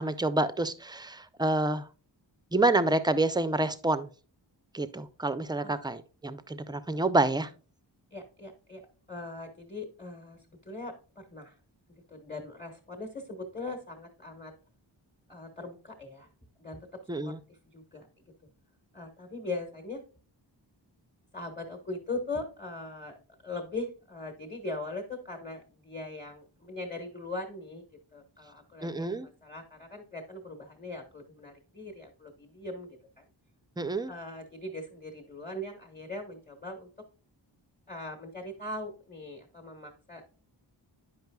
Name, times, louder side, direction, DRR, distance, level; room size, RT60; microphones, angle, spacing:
voice 1, 0.0-1.8 2.5-4.1 4.7-7.5 17.1-17.4 28.8-29.3 33.8-34.1, right 2 dB, 10° right, 12 dB, 0.3 m, -28 dB
voice 2, 8.1-8.8 9.1-11.6 11.9-14.5 15.3-16.3 16.6-18.1 18.9-20.0 21.3-23.2 23.4-33.2 34.1-36.9 37.9-40.2, left 2 dB, 20° left, 2 dB, 1.1 m, -40 dB
9.3 x 5.4 x 2.3 m, 0.37 s
wide cardioid pair, 85°, 45 cm